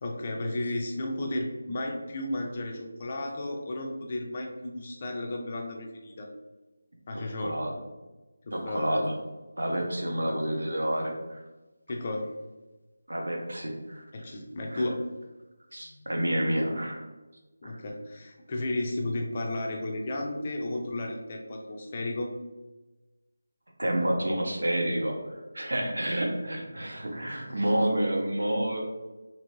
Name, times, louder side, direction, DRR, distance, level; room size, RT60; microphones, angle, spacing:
voice 1, 0.0-6.3 7.1-7.6 8.4-9.0 10.3-10.4 11.9-12.3 14.1-15.0 15.8-16.0 17.6-22.3, left 1 dB, 25° left, 1 dB, 0.4 m, -33 dB
voice 2, 7.4-7.7 8.5-9.1 9.6-11.4 13.1-14.0 14.7-14.8 15.7-17.0 17.6-17.7 23.8-28.8, right 1 dB, 90° right, 1 dB, 0.8 m, -29 dB
2.9 x 2.6 x 3.0 m, 1.1 s
figure-of-eight pair, 175°, 0 cm